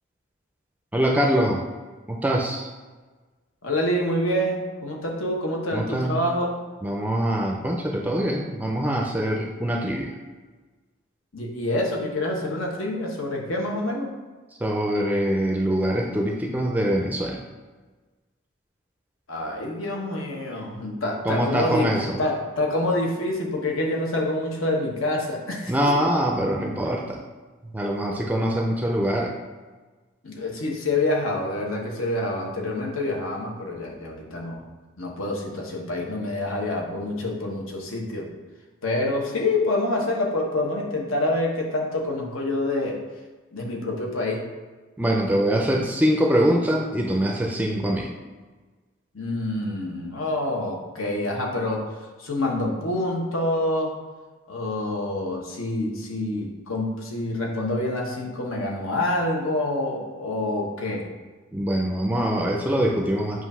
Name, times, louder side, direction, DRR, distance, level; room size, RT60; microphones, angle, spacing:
voice 1, 0.9-1.7 2.1-2.7 5.7-6.2 6.8-10.1 14.6-17.4 21.3-22.2 25.7-27.2 27.7-29.3 45.0-48.1 61.5-63.4, equal, 10° right, 0 dB, 0.4 m, -23 dB
voice 2, 3.6-6.6 11.3-14.1 19.3-21.9 22.2-26.1 30.2-34.6 35.0-38.3 38.8-43.0 43.5-44.5 49.1-51.8 52.2-53.9 54.5-61.0, left 1 dB, 75° left, -1 dB, 1.2 m, -27 dB
7.8 x 2.6 x 5.5 m, 1.3 s
head